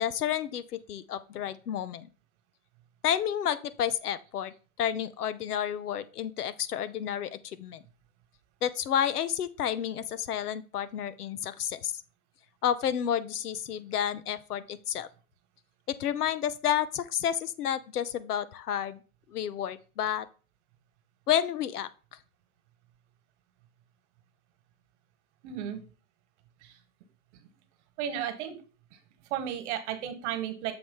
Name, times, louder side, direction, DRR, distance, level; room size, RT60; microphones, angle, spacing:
voice 1, 0.0-2.1 3.0-7.8 8.6-12.0 12.6-15.1 15.9-19.0 19.3-20.3 21.3-21.9, left 10 dB, 85° left, 15 dB, 0.7 m, -30 dB
voice 2, 25.4-25.8 26.6-26.7 28.0-28.5 29.3-30.7, right 10 dB, 50° right, 8 dB, 1.4 m, -33 dB
7.0 x 3.1 x 5.4 m, 0.36 s
hypercardioid pair, 120°, 45 cm